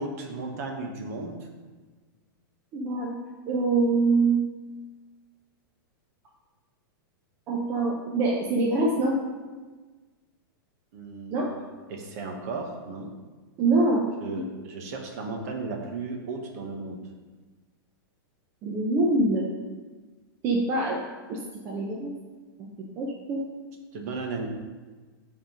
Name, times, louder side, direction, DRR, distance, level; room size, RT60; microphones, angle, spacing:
voice 1, 0.0-1.5 10.9-11.6 11.9-13.1 14.2-17.0 23.9-24.5, right 3 dB, 45° right, 2 dB, 1.1 m, -35 dB
voice 2, 2.7-3.1 3.5-4.5 7.5-9.2 11.3-11.5 13.6-14.4 18.6-19.5 20.4-21.0 21.3-21.4 21.6-22.1 22.6-22.7 23.0-23.4, right 2 dB, 20° right, -2 dB, 0.6 m, -24 dB
8.6 x 3.7 x 5.1 m, 1.4 s
supercardioid pair, 175°, 12 cm